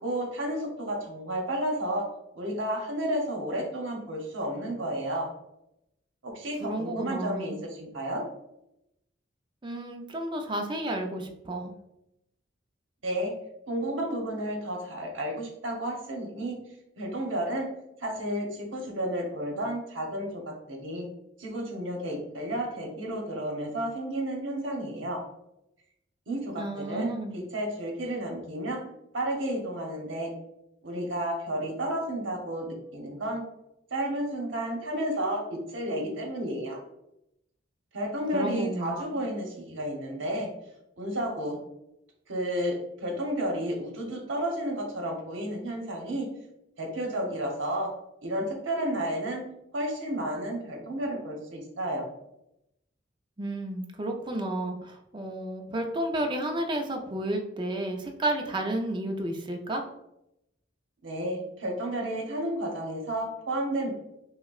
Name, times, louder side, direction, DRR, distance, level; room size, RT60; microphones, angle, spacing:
voice 1, 0.0-2.1 2.3-5.3 6.2-8.2 13.0-13.3 13.7-16.6 17.0-17.7 18.0-21.1 21.4-25.2 26.3-28.8 29.1-30.3 30.8-33.4 33.9-36.8 37.9-40.5 41.0-41.6 42.3-46.3 46.8-47.9 48.2-49.4 49.7-52.1 61.0-63.9, right 1 dB, 80° right, 1 dB, 0.9 m, -32 dB
voice 2, 6.6-7.6 9.6-11.8 26.6-27.3 38.3-39.2 53.4-59.8, right 1 dB, 25° right, 3 dB, 0.5 m, -32 dB
5.5 x 2.1 x 2.3 m, 0.84 s
head